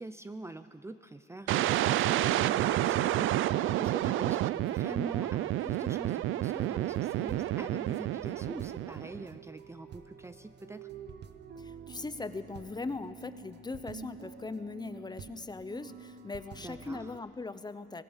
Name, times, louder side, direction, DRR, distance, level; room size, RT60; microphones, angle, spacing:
voice 1, 0.0-10.9 16.6-17.1, right 2 dB, 15° right, 10 dB, 0.7 m, -44 dB
sound 1, 1.5-9.3, right 14 dB, 85° right, 0.5 m, -29 dB
sound 2, 6.6-17.2, right 6 dB, 60° right, 1.1 m, -49 dB
voice 2, 11.6-18.0, left 3 dB, 20° left, 12 dB, 0.9 m, -40 dB
25.0 x 18.0 x 7.4 m, 2.5 s
cardioid pair, 90°, 20 cm